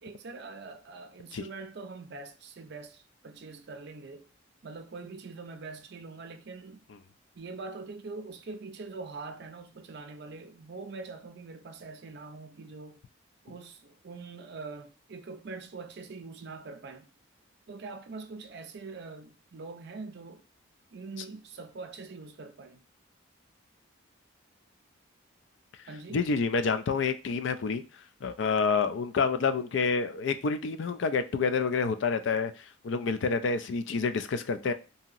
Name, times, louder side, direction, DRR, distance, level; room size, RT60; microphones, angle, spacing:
voice 1, 0.0-4.3 4.6-6.8 7.3-13.0 13.4-17.1 17.7-20.4 20.9-22.8 25.9-26.2, right 3 dB, 55° right, 0.4 m, -43 dB
voice 2, 26.1-27.8 28.2-34.7, left 5 dB, 60° left, 0.4 m, -28 dB
2.9 x 2.7 x 2.4 m
head